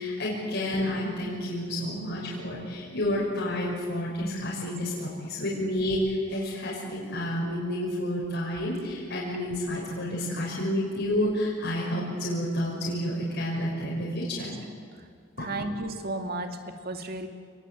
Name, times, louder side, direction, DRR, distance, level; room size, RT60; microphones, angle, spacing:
voice 1, 0.0-14.6 15.4-15.5, left 1 dB, 55° left, -5 dB, 6.2 m, -30 dB
voice 2, 15.4-17.3, right 2 dB, 50° right, 5 dB, 2.4 m, -33 dB
29.5 x 20.5 x 8.7 m, 2.1 s
head